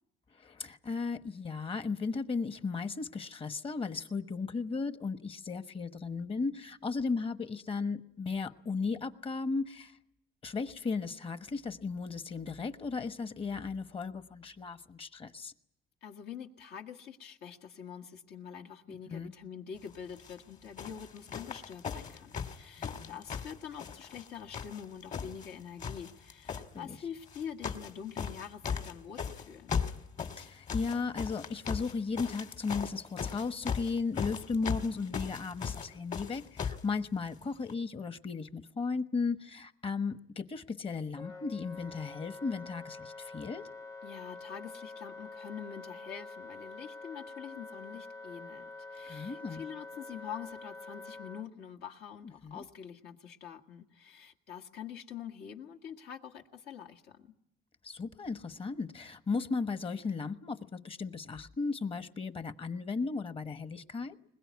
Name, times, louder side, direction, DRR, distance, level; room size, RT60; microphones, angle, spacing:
voice 1, 0.4-10.0 10.4-15.5 18.9-19.3 22.8-23.2 26.7-27.0 30.4-43.6 49.1-49.6 52.4-52.6 57.8-64.2, left 4 dB, 35° left, 11 dB, 1.2 m, -35 dB
voice 2, 16.0-29.8 44.0-57.3, left 8 dB, 75° left, 4 dB, 1.9 m, -45 dB
sound 1, 20.1-20.4 20.8-24.3 24.5-25.5 25.8-26.6 27.3-27.9 28.2-36.9 37.7-37.8, left 6 dB, 50° left, 2.1 m, -37 dB
Wind instrument woodwind instrument, 41.2-51.5, left 3 dB, 15° left, 0.8 m, -46 dB
21.5 x 20.5 x 9.5 m, 0.77 s
cardioid pair, 110°, 17 cm